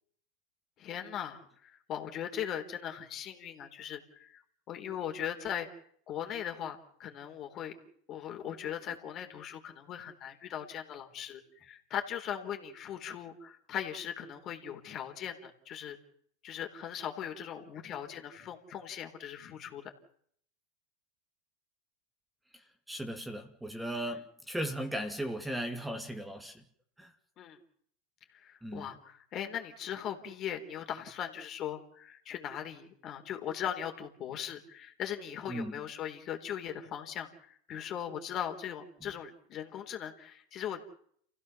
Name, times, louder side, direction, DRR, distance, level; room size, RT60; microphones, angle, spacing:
voice 1, 0.8-4.4 4.7-5.7 6.1-7.7 8.1-16.0 16.4-19.8 24.0-24.2 27.4-27.6 28.3-40.8, left 9 dB, 40° left, 4.0 m, -39 dB
voice 2, 22.5-26.6 27.0-27.1 28.6-28.9 35.5-35.8, right 1 dB, 5° right, 2.3 m, -37 dB
29.5 x 16.0 x 7.2 m
hypercardioid pair, 100°, 0 cm